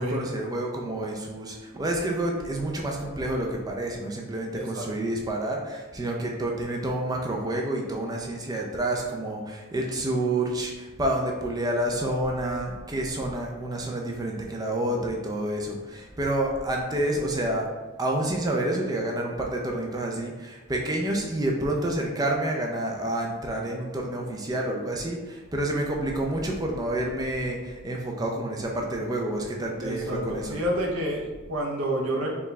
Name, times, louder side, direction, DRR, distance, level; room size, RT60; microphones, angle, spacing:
voice 1, 0.0-17.7 18.0-30.6, right 1 dB, 15° right, 0 dB, 0.4 m, -29 dB
voice 2, 4.5-5.1 29.8-32.4, equal, 75° right, -2 dB, 0.8 m, -29 dB
4.6 x 2.3 x 3.1 m, 1.3 s
head